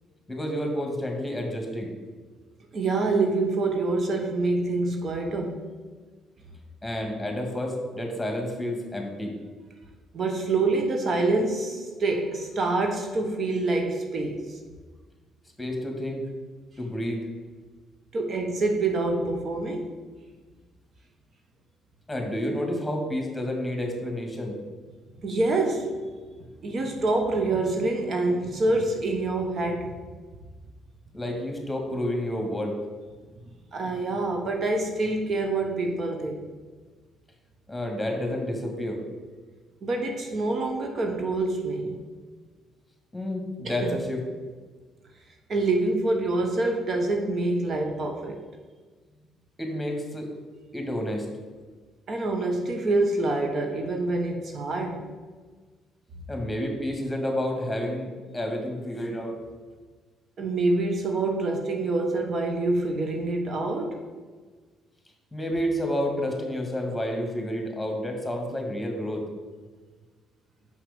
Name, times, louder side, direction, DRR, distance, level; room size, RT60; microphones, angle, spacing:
voice 1, 0.3-1.9 6.8-9.4 15.6-16.3 16.8-17.2 22.1-24.6 31.1-32.8 37.7-39.0 43.1-44.2 49.6-50.3 50.7-51.3 56.3-59.4 65.3-69.2, equal, 10° left, 2 dB, 2.1 m, -30 dB
voice 2, 2.7-5.6 10.1-14.6 18.1-19.9 25.2-26.0 26.6-29.9 33.7-36.5 39.8-42.0 43.6-44.0 45.5-48.4 52.1-55.1 60.4-64.1, right 2 dB, 50° right, 3 dB, 1.0 m, -26 dB
5.9 x 5.8 x 5.2 m, 1.4 s
supercardioid pair, 60°, 0 cm